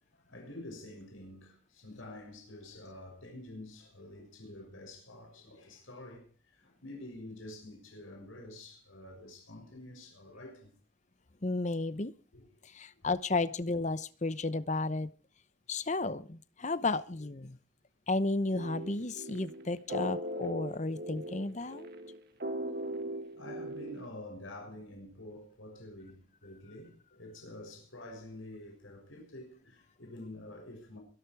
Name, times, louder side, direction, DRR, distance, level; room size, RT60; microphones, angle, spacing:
voice 1, 0.1-10.7 12.3-12.4 13.0-13.1 21.6-21.8 22.7-22.8 23.4-31.0, left 1 dB, 80° left, 6.8 m, -48 dB
voice 2, 11.4-12.1 12.6-15.1 15.7-17.6 18.1-21.9, left 2 dB, 35° left, 0.8 m, -33 dB
sound 1, 18.5-24.1, equal, 50° right, 2.0 m, -39 dB
24.0 x 12.0 x 4.7 m
head